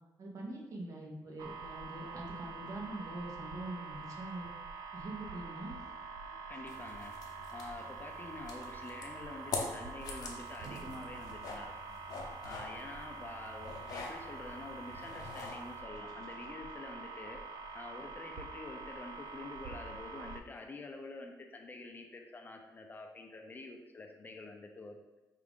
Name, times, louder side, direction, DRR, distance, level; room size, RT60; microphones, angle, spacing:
voice 1, 0.2-4.5 4.9-5.7, right 1 dB, 55° right, -1 dB, 1.0 m, -43 dB
sound 1, 1.4-20.4, right 4 dB, 80° right, 0.3 m, -46 dB
voice 2, 6.5-7.1 7.5-12.0 12.4-17.4 17.7-25.0, left 3 dB, 30° left, 4 dB, 0.4 m, -47 dB
sound 2, 6.7-15.8, left 4 dB, 80° left, 0.7 m, -45 dB
4.7 x 2.5 x 3.5 m, 1.1 s
cardioid pair, 115°, 6 cm